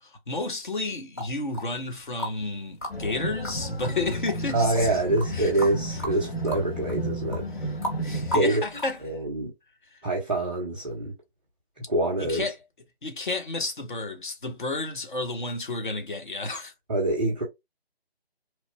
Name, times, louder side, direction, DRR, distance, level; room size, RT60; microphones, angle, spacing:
voice 1, 0.0-4.9 5.3-5.7 7.6-7.7 8.0-9.0 9.9-10.0 12.2-12.6 13.0-16.7, left 3 dB, 50° left, 1.2 m, -32 dB
sound 1, 1.2-2.5 2.8-9.1, left 1 dB, 15° left, 0.9 m, -35 dB
sound 2, 2.9-8.4, right 1 dB, 70° left, 1.9 m, -33 dB
voice 2, 4.5-7.4 8.3-8.6 9.0-9.5 10.0-11.1 11.9-12.4 16.9-17.4, right 2 dB, 10° right, 0.8 m, -25 dB
4.2 x 3.2 x 2.2 m
figure-of-eight pair, 155°, 32 cm